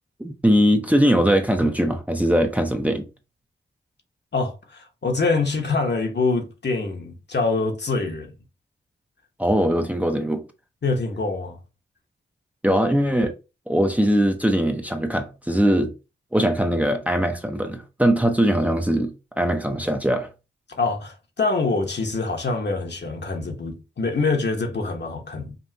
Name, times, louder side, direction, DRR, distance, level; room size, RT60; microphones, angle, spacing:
voice 1, 0.2-3.1 9.4-10.4 12.6-13.3 13.7-15.9 16.3-20.3, equal, 5° right, 0.6 m, -21 dB
voice 2, 4.3-8.3 10.8-11.6 20.7-25.6, left 3 dB, 55° left, 1.1 m, -25 dB
5.3 x 2.5 x 2.8 m
cardioid pair, 55°, 21 cm